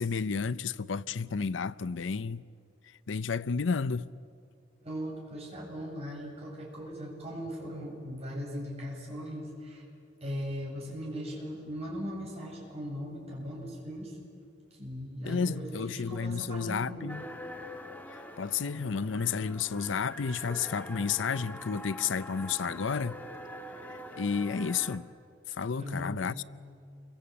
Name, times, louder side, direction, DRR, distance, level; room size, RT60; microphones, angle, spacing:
voice 1, 0.0-2.4 3.1-4.1 15.2-17.2 18.4-23.1 23.9-25.1 25.5-26.4, left 5 dB, 85° left, 0.6 m, -31 dB
voice 2, 4.8-9.8 10.2-14.2 14.8-17.3 25.8-26.2, equal, 35° right, 8.0 m, -39 dB
sound 1, 17.1-25.0, equal, 10° left, 1.7 m, -44 dB
29.0 x 23.5 x 8.6 m
head